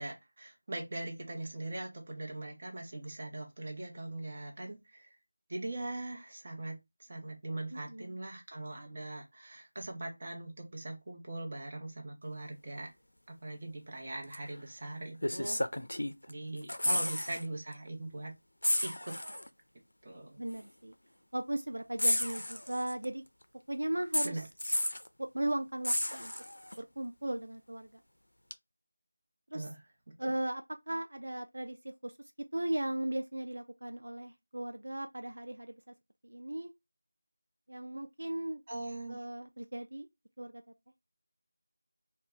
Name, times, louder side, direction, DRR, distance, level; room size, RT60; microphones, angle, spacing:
voice 1, 0.0-5.1 5.5-12.9 13.3-15.6 16.3-18.3 18.8-19.2 20.0-20.4 24.2-24.5 29.5-30.3 38.7-39.2, right 2 dB, 35° right, 0.7 m, -41 dB
voice 2, 7.7-8.1 20.4-20.9 21.3-23.2 23.7-24.4 25.2-26.3 26.7-28.0 29.5-29.7 30.2-32.1 32.5-35.7 36.2-36.7 37.7-38.6 39.1-40.1 40.4-40.6, right 1 dB, 75° right, 0.3 m, -37 dB
sound 1, 14.3-14.5 15.2-16.3 16.6-17.4 17.7-17.9 18.6-19.5 20.5-20.6 22.0-23.0 24.1-25.1 25.8-26.8 28.5-28.6, left 1 dB, 85° left, 0.3 m, -32 dB
2.1 x 2.1 x 3.6 m
figure-of-eight pair, 170°, 0 cm